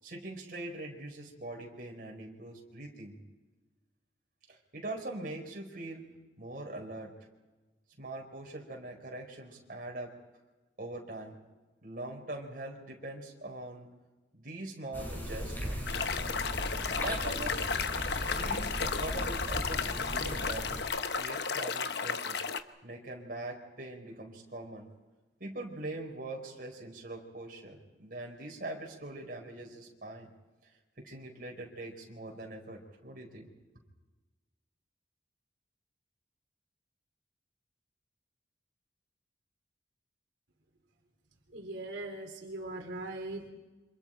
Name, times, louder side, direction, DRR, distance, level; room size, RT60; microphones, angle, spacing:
voice 1, 0.0-3.2 4.5-6.1 6.4-7.1 8.0-10.1 10.8-11.4 11.8-13.9 14.3-16.0 17.0-17.7 18.3-20.7 21.2-22.4 22.8-24.9 25.4-30.3 31.0-33.5, right 2 dB, 50° right, 0 dB, 4.6 m, -42 dB
sound 1, 14.9-20.8, equal, 10° left, 6.7 m, -38 dB
sound 2, 15.9-22.6, left 5 dB, 65° left, 1.0 m, -34 dB
voice 2, 41.5-43.5, right 2 dB, 90° right, 1 dB, 3.0 m, -40 dB
29.0 x 26.5 x 4.6 m, 1.2 s
head